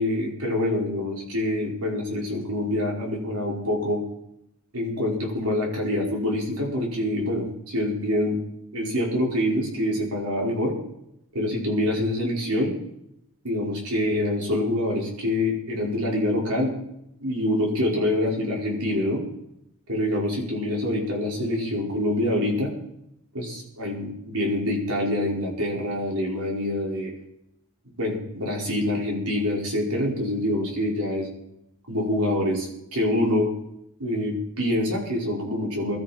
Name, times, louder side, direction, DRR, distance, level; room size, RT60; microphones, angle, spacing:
voice 1, 0.0-4.0 4.7-8.4 8.7-10.7 11.3-12.7 13.4-16.8 17.2-19.2 19.9-22.7 23.3-27.1 28.0-31.3 31.9-33.5 34.0-36.0, left 1 dB, 85° right, -2 dB, 5.2 m, -26 dB
22.5 x 13.0 x 4.4 m, 0.82 s
head